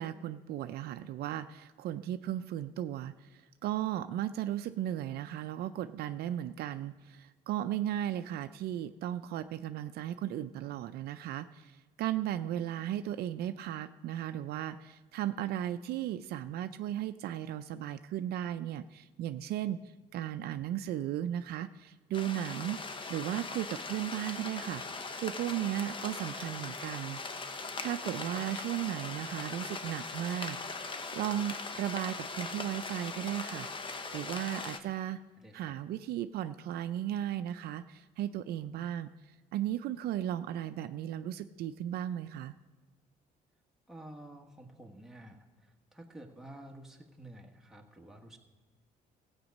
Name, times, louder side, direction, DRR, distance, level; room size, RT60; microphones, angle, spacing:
voice 1, 0.0-19.8 20.1-22.8 23.1-27.2 27.5-33.7 34.1-35.2 35.5-39.1 39.5-42.5, right 11 dB, 70° right, 11 dB, 0.4 m, -36 dB
sound 1, 22.1-34.8, left 3 dB, 30° left, 0.8 m, -40 dB
voice 2, 35.4-35.7 43.9-48.4, right 1 dB, ahead, 1 dB, 1.3 m, -51 dB
15.0 x 8.1 x 5.3 m, 1.3 s
cardioid pair, 110°, 17 cm